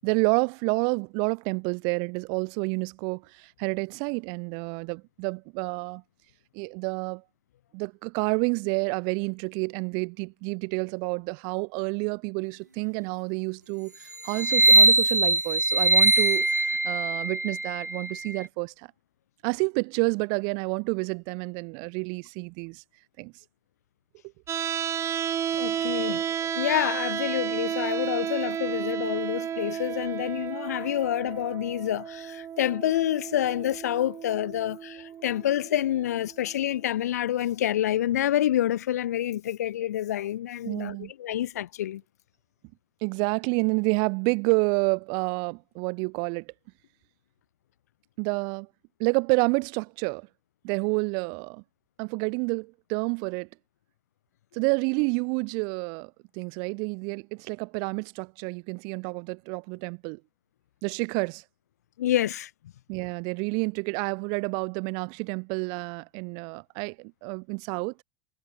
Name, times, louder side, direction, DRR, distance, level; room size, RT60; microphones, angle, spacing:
voice 1, 0.0-6.0 6.5-7.2 7.7-18.9 19.4-22.8 23.2-23.3 40.6-41.1 43.0-46.5 48.2-48.7 49.0-50.3 50.6-51.6 52.0-53.5 54.5-60.2 60.8-61.4 62.9-67.9, right 37 dB, 55° right, 6.7 m, -29 dB
sound 1, 14.3-18.4, right 2 dB, 90° right, 0.6 m, -21 dB
sound 2, 24.5-36.5, right 9 dB, 30° right, 6.7 m, -32 dB
voice 2, 25.5-42.0 62.0-62.5, left 12 dB, 65° left, 4.1 m, -28 dB
figure-of-eight pair, 75°, 9 cm